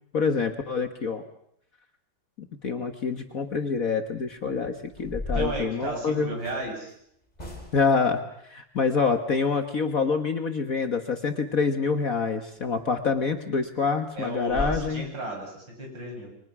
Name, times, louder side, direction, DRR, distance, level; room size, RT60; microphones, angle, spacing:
voice 1, 0.1-1.2 2.4-6.3 7.7-15.0, left 5 dB, 50° left, 6 dB, 1.7 m, -26 dB
sound 1, 4.1-4.4 4.9-6.7 7.4-8.0 12.5-12.7 13.1-13.2 13.6-13.7 14.1-14.2 14.5-14.8, left 2 dB, 20° left, 4.8 m, -35 dB
voice 2, 5.3-6.9 14.1-16.3, right 2 dB, 70° right, 1 dB, 7.8 m, -34 dB
30.0 x 23.5 x 6.1 m, 0.73 s
omnidirectional pair, 2.1 m